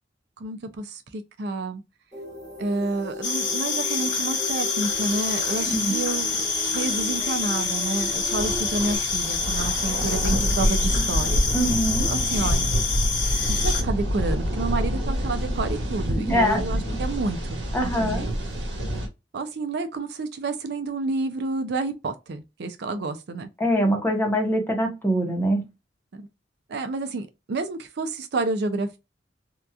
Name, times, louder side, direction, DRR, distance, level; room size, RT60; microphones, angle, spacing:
voice 1, 0.4-1.8 2.6-6.5 6.7-11.4 12.1-12.7 13.5-18.3 19.3-23.5 26.1-26.3 26.7-29.0, right 3 dB, 60° right, 0.4 m, -29 dB
sound 1, 2.1-9.0, equal, 20° right, 1.1 m, -37 dB
sound 2, 3.2-13.8, left 5 dB, 80° left, 0.8 m, -27 dB
sound 3, 4.8-19.1, equal, 80° right, 1.2 m, -28 dB
voice 2, 11.5-12.1 16.2-17.0 17.7-18.2 23.6-25.6, equal, 10° left, 0.8 m, -24 dB
2.8 x 2.2 x 2.3 m
head